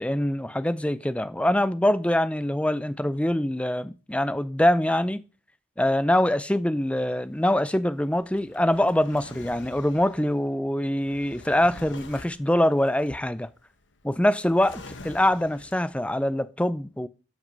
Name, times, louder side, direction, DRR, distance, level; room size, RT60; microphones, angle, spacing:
voice 1, 0.0-5.2 5.8-13.5 14.0-17.1, left 1 dB, 5° left, 0.5 m, -24 dB
Drawer open or close, 6.8-16.1, left 3 dB, 65° left, 1.2 m, -47 dB
12.5 x 6.0 x 5.4 m
head